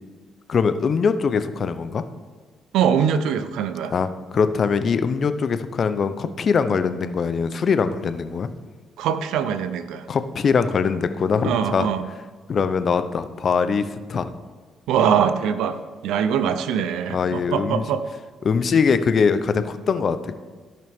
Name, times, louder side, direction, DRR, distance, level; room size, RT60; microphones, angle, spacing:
voice 1, 0.5-2.0 3.9-8.5 10.1-11.9 12.5-14.3 17.1-17.8 18.4-20.3, left 5 dB, 50° left, 11 dB, 0.6 m, -22 dB
voice 2, 2.7-3.9 9.0-10.1 11.4-12.0 14.9-15.8 16.0-18.0, right 8 dB, 90° right, 11 dB, 0.6 m, -22 dB
13.5 x 5.9 x 3.6 m, 1.5 s
cardioid pair, 90°, 0 cm